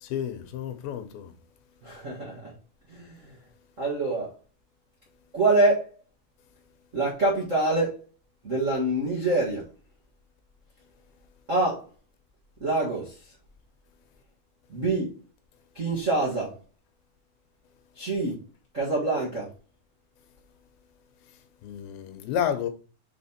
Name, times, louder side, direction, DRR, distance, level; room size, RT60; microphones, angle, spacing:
voice 1, 0.0-1.3 21.6-22.7, left 9 dB, 85° left, 2.8 m, -31 dB
voice 2, 1.8-2.5 2.9-3.3 3.8-4.3 5.3-5.9 6.9-8.0 8.4-9.7 11.5-11.8 12.6-13.2 14.7-15.2 15.7-16.6 17.9-18.4 18.7-19.5, right 2 dB, 50° right, 0.8 m, -25 dB
6.0 x 4.1 x 4.2 m
omnidirectional pair, 4.2 m